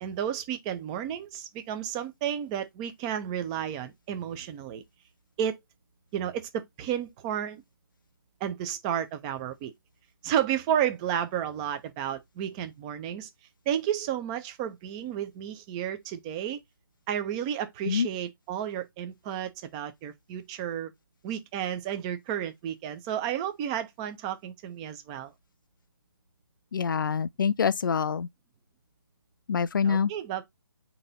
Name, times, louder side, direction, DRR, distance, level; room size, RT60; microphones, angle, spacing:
voice 1, 0.0-4.8 5.4-5.6 6.1-7.6 8.4-9.7 10.2-13.3 13.7-16.6 17.1-20.9 21.2-25.3 29.8-30.4, right 10 dB, 15° right, 0.5 m, -32 dB
voice 2, 26.7-28.3 29.5-30.1, left 6 dB, 60° left, 0.4 m, -25 dB
3.9 x 2.8 x 3.7 m
figure-of-eight pair, 145°, 12 cm